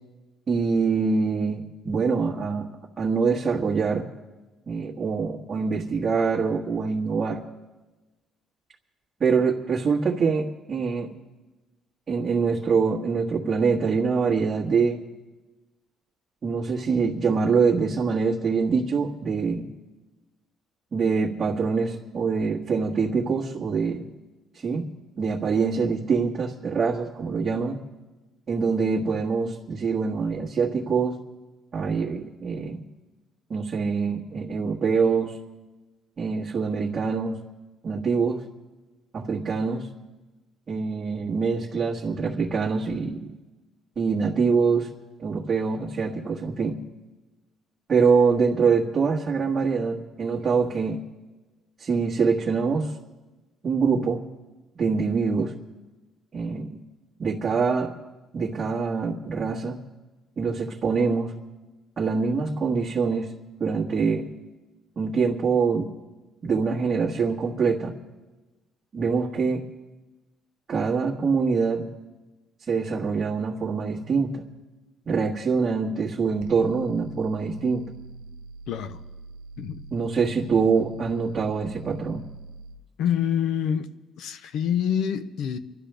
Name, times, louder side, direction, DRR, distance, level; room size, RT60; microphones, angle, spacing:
voice 1, 0.5-2.7 3.0-4.0 4.7-7.4 9.2-11.1 12.1-15.0 16.4-19.7 20.9-24.1 24.6-24.9 25.2-27.8 28.5-31.2 31.7-32.8 33.5-35.3 36.2-37.4 37.8-38.4 39.1-39.9 40.7-43.3 43.9-44.9 45.2-46.8 47.9-51.0 51.8-52.9 53.6-54.2 54.8-55.5 56.3-56.8 57.2-57.9 58.3-59.8 60.4-61.3 62.0-63.3 63.6-64.3 65.0-65.9 66.4-67.9 68.9-69.6 70.7-71.9 72.6-74.4 75.1-77.9 79.9-82.2, right 5 dB, 35° right, 1.6 m, -24 dB
sound 1, 76.4-82.8, right 3 dB, 90° right, 0.8 m, -43 dB
voice 2, 78.7-79.0 79.6-79.8 83.0-83.9 84.2-85.6, left 8 dB, 70° left, 0.8 m, -26 dB
27.5 x 12.0 x 3.4 m
cardioid pair, 130°, 0 cm